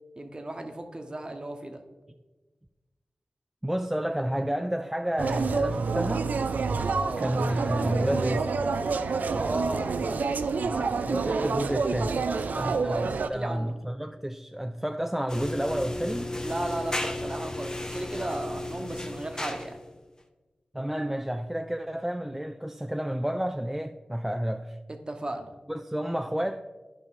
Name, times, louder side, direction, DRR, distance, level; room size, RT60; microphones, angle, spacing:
voice 1, 0.2-1.8 6.9-7.2 9.4-10.4 10.7-11.0 12.3-13.8 16.4-19.8 25.1-25.5, right 1 dB, 30° right, 1.0 m, -35 dB
voice 2, 3.6-6.3 7.2-8.5 10.6-10.8 11.1-12.2 12.6-16.3 20.7-24.8 25.7-26.6, equal, 10° right, 0.3 m, -30 dB
sound 1, 5.2-13.3, right 4 dB, 85° right, 0.4 m, -28 dB
sound 2, 15.3-19.9, left 1 dB, 25° left, 0.8 m, -34 dB
11.0 x 5.4 x 3.8 m
wide cardioid pair, 60°, 3 cm